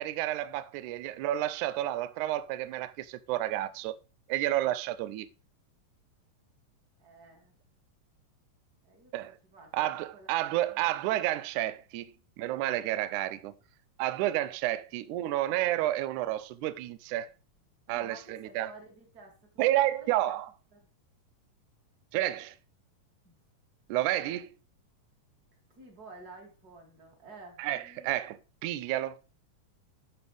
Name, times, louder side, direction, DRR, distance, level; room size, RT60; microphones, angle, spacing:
voice 1, 0.0-3.9 4.3-5.3 9.1-9.4 9.7-13.5 14.0-17.3 17.9-18.7 19.6-20.5 22.1-22.6 23.9-24.5 27.6-28.4 28.6-29.2, right 14 dB, 75° right, 2.0 m, -30 dB
voice 2, 7.0-7.5 8.8-9.1 9.4-10.8 17.9-20.4 20.7-20.8 23.2-23.4 25.7-28.1, right 2 dB, 30° right, 2.7 m, -52 dB
11.5 x 6.9 x 3.4 m
omnidirectional pair, 3.8 m